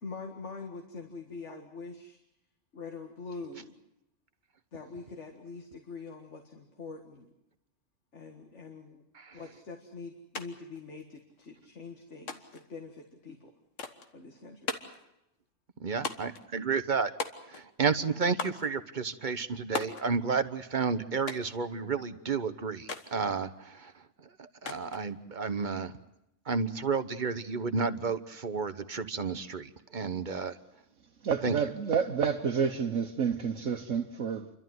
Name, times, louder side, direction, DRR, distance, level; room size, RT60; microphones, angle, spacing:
voice 1, 0.0-2.2 2.7-3.8 4.7-7.3 8.1-9.0 9.3-13.5 14.1-14.7, left 4 dB, 70° left, 2.2 m, -44 dB
sound 1, 10.3-10.5 10.7-11.5 12.3-12.7 13.8-14.1 14.7-15.0 16.0-16.4 17.2-17.7 18.4-18.7 19.7-20.1 21.3-21.6 22.9-23.1 24.7-25.1, left 4 dB, 85° left, 1.9 m, -37 dB
voice 2, 15.8-17.1 17.5-23.9 24.4-25.9 26.5-30.6 31.4-31.6, right 5 dB, 40° right, 1.1 m, -31 dB
voice 3, 31.2-34.5, right 6 dB, 90° right, 1.4 m, -29 dB
29.0 x 12.5 x 9.4 m
omnidirectional pair, 1.3 m